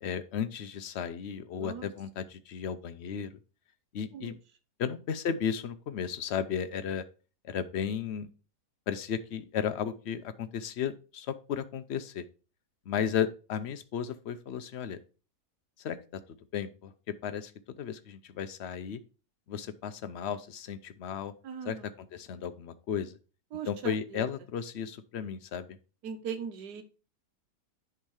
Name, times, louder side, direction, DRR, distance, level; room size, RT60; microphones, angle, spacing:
voice 1, 0.0-3.3 3.9-4.4 4.8-7.0 7.4-8.3 8.9-12.2 12.9-15.0 15.8-16.2 16.5-19.0 19.5-21.3 21.6-23.2 23.7-25.7, left 8 dB, 65° left, 12 dB, 0.7 m, -34 dB
voice 2, 1.5-1.9 4.1-4.3 21.4-21.8 23.5-23.9 26.0-26.8, right 7 dB, 75° right, 8 dB, 1.5 m, -38 dB
10.5 x 3.6 x 4.7 m, 0.34 s
omnidirectional pair, 1.8 m